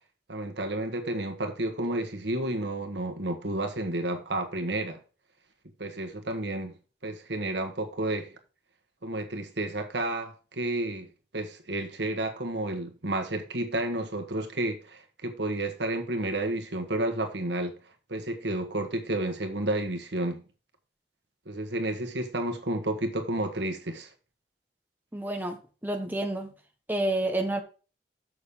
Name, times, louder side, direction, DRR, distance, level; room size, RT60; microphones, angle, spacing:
voice 1, 0.3-5.0 5.8-6.7 7.0-8.3 9.0-11.1 11.3-17.8 18.1-20.4 21.4-24.1, right 1 dB, 80° right, 1.7 m, -31 dB
voice 2, 25.1-25.6 25.8-26.5 26.9-27.6, right 1 dB, 10° right, 1.3 m, -29 dB
6.9 x 6.7 x 5.6 m
head